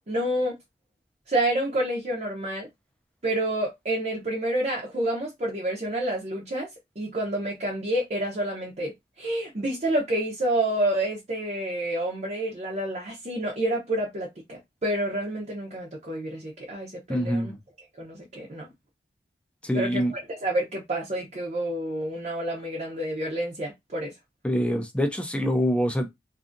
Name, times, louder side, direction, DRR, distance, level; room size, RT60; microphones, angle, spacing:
voice 1, 0.1-0.5 1.3-2.7 3.2-6.7 7.0-8.9 9.2-17.5 18.0-18.7 19.7-24.1, right 1 dB, 40° right, 0.6 m, -28 dB
voice 2, 17.1-17.6 19.6-20.1 24.4-26.1, equal, 5° left, 0.4 m, -25 dB
2.6 x 2.4 x 2.5 m
head